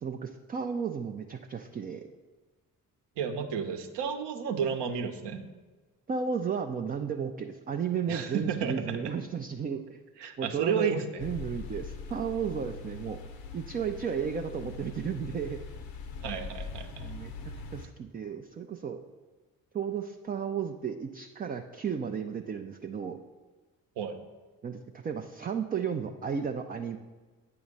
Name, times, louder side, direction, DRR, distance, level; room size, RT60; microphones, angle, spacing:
voice 1, 0.0-2.0 6.1-10.0 10.4-13.2 13.5-15.6 17.0-17.3 17.7-19.0 19.7-23.2 24.6-27.0, right 6 dB, 20° right, 5 dB, 0.3 m, -34 dB
voice 2, 3.2-5.4 8.1-9.0 10.2-11.0 16.2-17.1 24.0-24.2, right 7 dB, 60° right, 6 dB, 0.8 m, -32 dB
sound 1, 11.2-17.9, left 4 dB, 70° left, 0.8 m, -42 dB
8.5 x 3.0 x 5.2 m, 1.3 s
hypercardioid pair, 40°, 46 cm